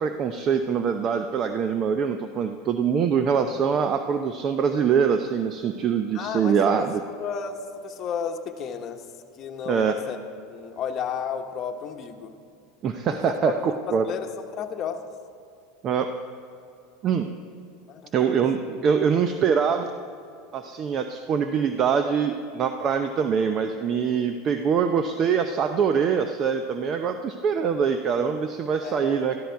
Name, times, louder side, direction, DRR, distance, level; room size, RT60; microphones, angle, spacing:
voice 1, 0.0-7.0 9.7-9.9 12.8-14.0 15.8-16.1 17.0-17.3 18.1-19.9 20.5-29.4, right 6 dB, 40° right, 7 dB, 0.7 m, -24 dB
voice 2, 6.1-9.0 9.4-10.2 10.4-12.3 13.1-13.5 13.8-15.1 17.9-18.3 28.8-29.2, left 7 dB, 40° left, 4 dB, 1.2 m, -33 dB
13.5 x 13.0 x 4.7 m, 2.5 s
supercardioid pair, 115°, 0 cm